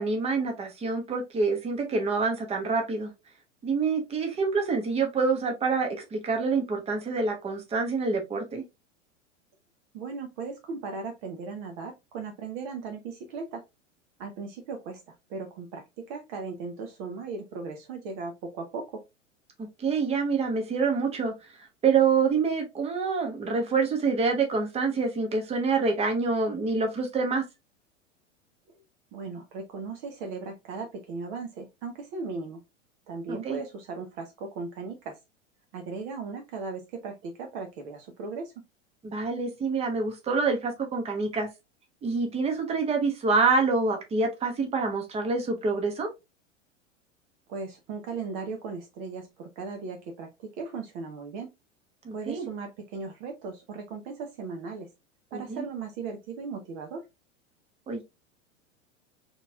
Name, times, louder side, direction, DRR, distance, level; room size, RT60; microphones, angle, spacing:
voice 1, 0.0-3.1 3.6-8.6 19.6-27.4 33.3-33.6 39.0-41.5 42.0-46.1 52.0-52.5 55.3-55.6 57.9-58.0, right 4 dB, 15° right, 1.0 m, -27 dB
voice 2, 9.9-13.6 14.2-15.0 15.3-19.0 29.1-32.6 33.1-35.2 35.7-38.5 47.5-51.5 52.1-54.9 55.3-57.0, right 4 dB, 40° right, 0.9 m, -37 dB
4.2 x 3.1 x 2.4 m
figure-of-eight pair, 90°, 37 cm